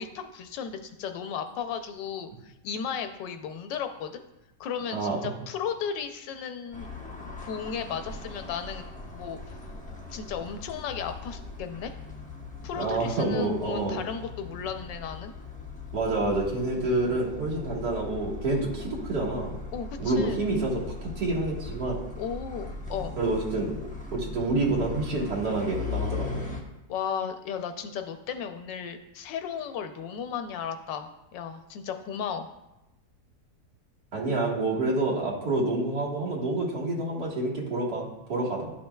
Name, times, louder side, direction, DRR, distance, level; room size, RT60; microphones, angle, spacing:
voice 1, 0.0-4.2 4.6-6.9 7.4-9.6 10.1-11.9 12.6-15.3 19.7-20.5 22.2-23.2 26.9-32.5, left 7 dB, 90° left, 8 dB, 1.3 m, -35 dB
sound 1, 6.7-26.6, left 3 dB, 10° left, 0.5 m, -39 dB
voice 2, 12.7-14.0 15.9-19.6 20.0-22.0 23.2-23.7 24.1-26.4 34.1-38.7, right 2 dB, 65° right, -4 dB, 2.2 m, -28 dB
11.5 x 5.4 x 2.3 m, 0.92 s
omnidirectional pair, 1.9 m